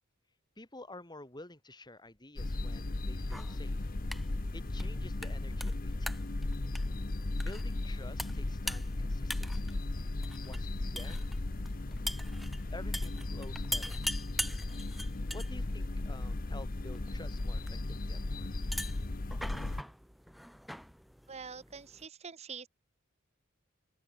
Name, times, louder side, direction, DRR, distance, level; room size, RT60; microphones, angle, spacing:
voice 1, 0.6-3.9 4.5-6.3 7.4-9.8 10.4-11.2 12.7-14.0 15.3-18.5, left 2 dB, 20° left, 3.7 m, -50 dB
sound 1, 2.4-19.8, left 2 dB, 40° left, 0.9 m, -36 dB
sound 2, 3.2-22.1, equal, ahead, 2.7 m, -44 dB
voice 2, 21.3-22.7, right 5 dB, 30° right, 0.9 m, -45 dB
open air
head